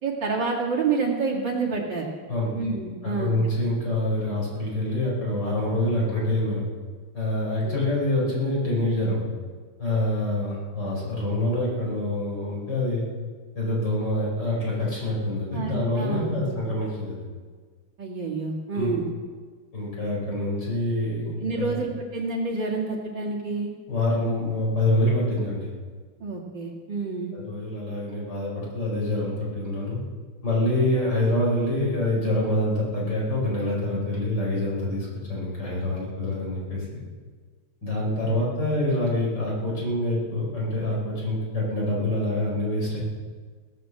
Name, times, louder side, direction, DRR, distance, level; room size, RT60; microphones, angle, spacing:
voice 1, 0.0-2.1 2.5-3.3 3.7-3.8 7.6-7.8 15.5-16.4 18.0-19.1 21.4-23.7 26.2-27.3, right 4 dB, 55° right, -3 dB, 2.9 m, -28 dB
voice 2, 3.0-6.6 7.1-9.2 9.8-13.0 13.6-17.2 18.7-18.9 19.7-21.7 23.9-25.7 27.3-30.0 30.4-37.0 37.8-43.0, left 1 dB, 50° left, -4 dB, 5.7 m, -26 dB
17.5 x 9.9 x 7.7 m, 1.5 s
omnidirectional pair, 2.4 m